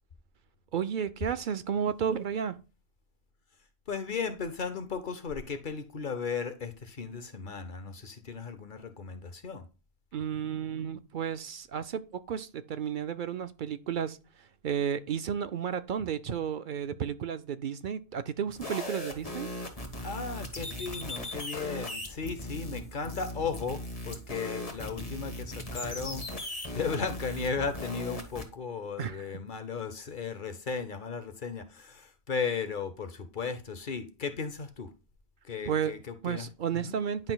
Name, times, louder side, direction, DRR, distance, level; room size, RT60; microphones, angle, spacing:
voice 1, 0.7-2.6 10.1-19.5 29.0-29.3 35.7-35.9 36.2-37.3, right 8 dB, 60° right, 0.6 m, -32 dB
voice 2, 3.9-9.7 20.0-34.9 35.4-37.0, left 5 dB, 55° left, 0.9 m, -36 dB
sound 1, 18.5-28.4, left 1 dB, 35° left, 1.5 m, -38 dB
10.5 x 5.8 x 2.3 m
omnidirectional pair, 1.1 m